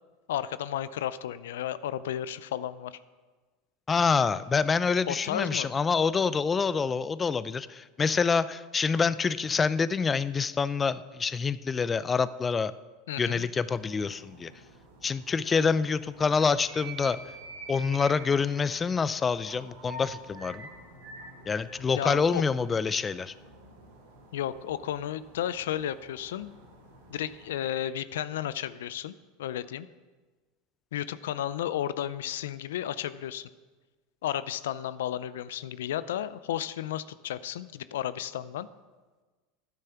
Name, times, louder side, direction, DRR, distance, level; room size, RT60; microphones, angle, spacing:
voice 1, 0.3-3.0 5.1-5.7 13.1-13.5 22.0-22.4 24.3-26.5 27.1-29.1 29.4-29.9 30.9-33.5 34.2-38.7, left 11 dB, 80° left, 16 dB, 0.5 m, -33 dB
voice 2, 3.9-12.7 13.2-14.5 15.0-17.2 17.7-20.7 21.5-23.3, left 5 dB, 25° left, 16 dB, 0.5 m, -26 dB
sound 1, 13.7-27.6, right 2 dB, 85° right, 3.5 m, -48 dB
12.0 x 9.8 x 5.8 m, 1.3 s
hypercardioid pair, 100°, 0 cm